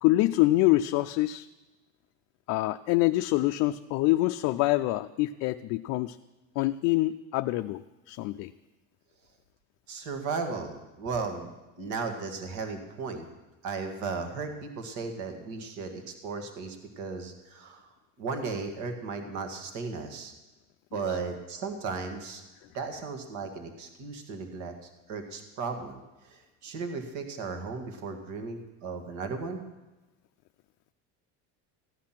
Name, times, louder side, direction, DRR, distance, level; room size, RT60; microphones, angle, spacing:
voice 1, 0.0-1.5 2.5-6.2 6.6-8.5 20.9-21.0, left 17 dB, 55° left, 7 dB, 0.4 m, -25 dB
voice 2, 9.9-11.5 11.8-13.3 13.6-17.9 18.2-20.3 20.9-22.4 22.7-24.7 25.1-29.6, right 4 dB, 55° right, 6 dB, 1.8 m, -35 dB
15.5 x 10.5 x 5.8 m, 1.1 s
cardioid pair, 155°, 33 cm